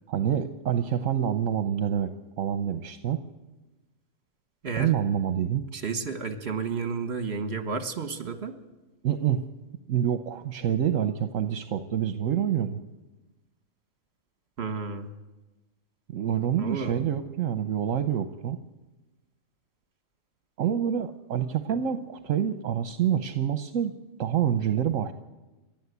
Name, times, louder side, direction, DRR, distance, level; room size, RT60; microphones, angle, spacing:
voice 1, 0.1-3.2 4.8-5.6 9.0-9.4 9.9-12.8 16.1-18.6 20.6-23.9 24.2-25.1, right 9 dB, 70° right, 9 dB, 1.2 m, -27 dB
voice 2, 4.6-4.9 5.7-8.6 14.6-15.1 16.6-17.1, right 5 dB, 50° right, 9 dB, 1.8 m, -32 dB
29.0 x 12.0 x 8.2 m, 1.1 s
omnidirectional pair, 1.4 m